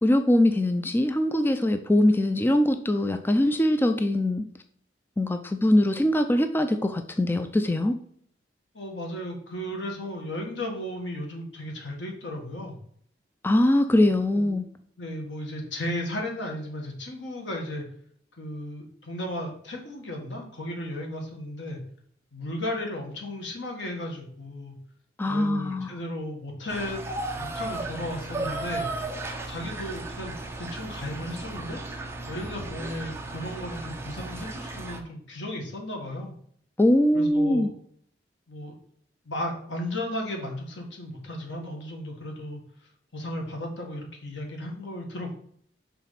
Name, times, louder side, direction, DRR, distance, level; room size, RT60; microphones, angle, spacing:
voice 1, 0.0-4.4 5.2-7.9 13.4-14.7 25.2-25.9 36.8-37.7, left 1 dB, 10° left, 7 dB, 0.3 m, -22 dB
voice 2, 8.7-12.8 14.4-14.6 15.0-17.9 18.4-21.8 22.3-24.8 25.3-27.0 27.4-28.9 29.5-31.8 32.3-36.4 37.1-37.7 38.5-38.7 39.3-42.6 43.1-45.4, left 1 dB, 80° left, 1 dB, 1.7 m, -35 dB
sound 1, 26.7-35.0, right 2 dB, 15° right, 0.7 m, -35 dB
5.9 x 3.6 x 5.7 m, 0.64 s
head